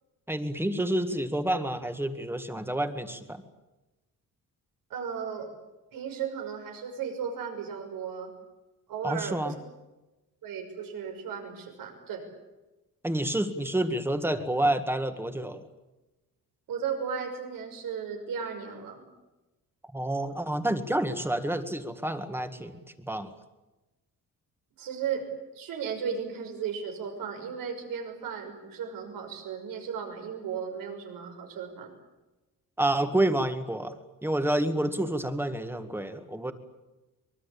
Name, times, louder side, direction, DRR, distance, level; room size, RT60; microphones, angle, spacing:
voice 1, 0.3-3.4 9.0-9.6 13.0-15.6 19.9-23.3 32.8-36.5, right 1 dB, 5° right, 8 dB, 1.9 m, -29 dB
voice 2, 4.9-5.5 5.9-8.3 8.9-9.6 10.4-12.2 16.7-19.0 24.8-25.2 25.5-31.9, right 7 dB, 80° right, 4 dB, 6.1 m, -35 dB
24.5 x 23.0 x 8.6 m, 1.1 s
cardioid pair, 150°, 33 cm